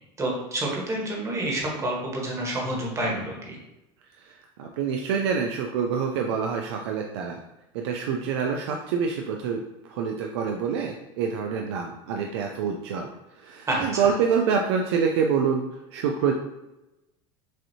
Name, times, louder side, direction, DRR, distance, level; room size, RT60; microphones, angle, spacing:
voice 1, 0.2-3.6 13.7-14.1, right 1 dB, 20° right, -2 dB, 1.4 m, -28 dB
voice 2, 4.2-7.4 7.7-9.6 9.9-15.6 15.9-16.3, right 6 dB, 85° right, 2 dB, 0.5 m, -26 dB
6.2 x 2.7 x 2.8 m, 0.95 s
supercardioid pair, 130°, 14 cm